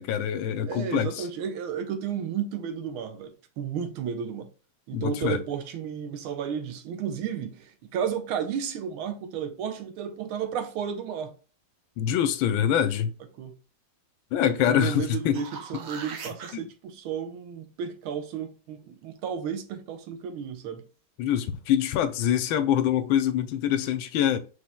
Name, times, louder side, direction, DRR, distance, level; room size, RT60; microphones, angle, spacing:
voice 1, 0.0-1.3 4.9-5.4 12.0-13.1 14.3-15.4 16.5-16.7 21.2-24.4, left 10 dB, 80° left, 1.3 m, -25 dB
voice 2, 0.6-4.5 4.9-11.3 13.4-13.6 14.4-20.9, right 7 dB, 90° right, 1.6 m, -33 dB
sound 1, 15.1-16.5 21.3-21.4, right 6 dB, 60° right, 0.9 m, -40 dB
4.9 x 4.2 x 2.2 m
omnidirectional pair, 2.3 m